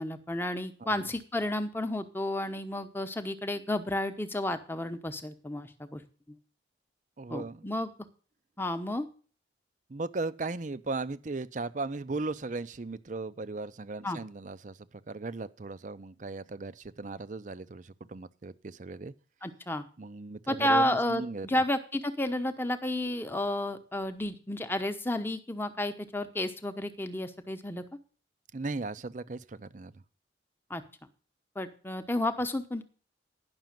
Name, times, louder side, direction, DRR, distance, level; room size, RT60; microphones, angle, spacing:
voice 1, 0.0-6.0 6.3-6.4 7.3-7.9 8.6-9.1 14.0-14.2 19.4-19.9 20.5-27.8 30.7-30.8 31.6-32.8, left 1 dB, 10° left, 9 dB, 0.9 m, -31 dB
voice 2, 7.2-7.7 9.9-19.1 20.0-21.6 28.5-30.0, right 3 dB, 45° right, 15 dB, 0.6 m, -37 dB
10.5 x 6.2 x 7.5 m, 0.39 s
head